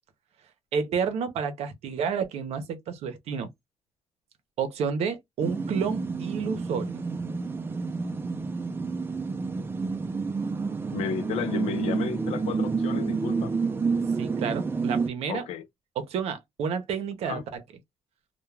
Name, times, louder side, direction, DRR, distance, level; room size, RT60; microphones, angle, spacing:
voice 1, 0.7-3.5 4.6-7.1 14.2-15.5 16.0-17.6, right 6 dB, 80° right, 0.7 m, -30 dB
sound 1, 5.4-15.1, right 4 dB, 20° right, 0.4 m, -29 dB
voice 2, 10.9-13.6 15.3-15.7 17.2-17.4, left 7 dB, 90° left, 0.5 m, -32 dB
2.3 x 2.2 x 3.1 m
cardioid pair, 115°, 10 cm